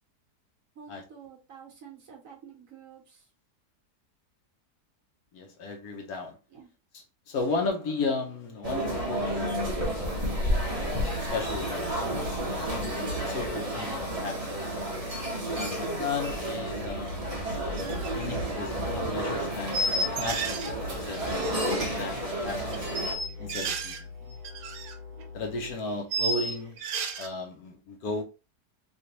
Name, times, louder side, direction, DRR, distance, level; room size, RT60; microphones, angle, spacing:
voice 1, 0.7-3.3 6.5-6.7, right 7 dB, 60° right, 1.2 m, -49 dB
voice 2, 5.3-6.4 6.9-14.4 14.7-14.8 15.5-17.3 18.2-22.9 23.4-24.4 25.3-26.8 27.2-28.2, left 3 dB, 65° left, 1.2 m, -35 dB
sound 1, 8.6-23.2, right 1 dB, 30° right, 0.8 m, -31 dB
sound 2, 9.1-25.7, left 5 dB, 40° left, 1.2 m, -44 dB
sound 3, 17.8-18.1 18.4-18.6 19.7-20.7 21.0-21.8 22.7-24.0 24.3-24.9 25.2-25.3 26.1-27.3, right 2 dB, 80° right, 1.2 m, -32 dB
3.3 x 2.9 x 2.8 m
omnidirectional pair, 1.8 m